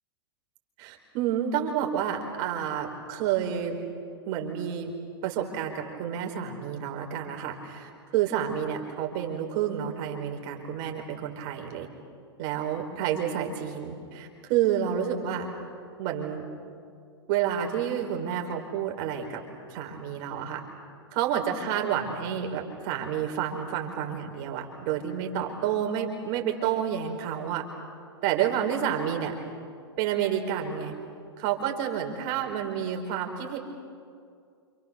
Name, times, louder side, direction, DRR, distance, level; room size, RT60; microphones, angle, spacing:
voice 1, 0.8-3.8 4.3-4.9 5.2-11.9 12.4-15.5 16.0-16.4 17.3-19.4 19.7-20.6 21.1-27.6 28.2-29.3 30.0-30.9 31.4-33.6, right 9 dB, 45° right, 3 dB, 4.8 m, -29 dB
29.5 x 28.0 x 6.9 m, 2.3 s
figure-of-eight pair, 100°, 14 cm